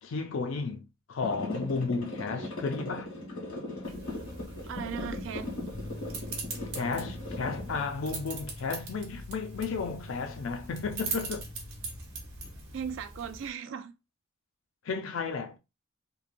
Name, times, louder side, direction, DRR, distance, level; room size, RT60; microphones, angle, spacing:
voice 1, 0.0-3.1 6.7-11.5 14.8-15.6, left 4 dB, 65° left, 0.4 m, -33 dB
sound 1, 1.2-7.8, left 2 dB, 80° left, 1.4 m, -38 dB
sound 2, 3.8-13.5, right 3 dB, 90° right, 1.0 m, -41 dB
voice 2, 4.7-5.5 12.7-14.0, right 7 dB, 60° right, 0.3 m, -37 dB
sound 3, 5.7-12.0, left 2 dB, ahead, 0.5 m, -46 dB
3.1 x 2.1 x 2.5 m
head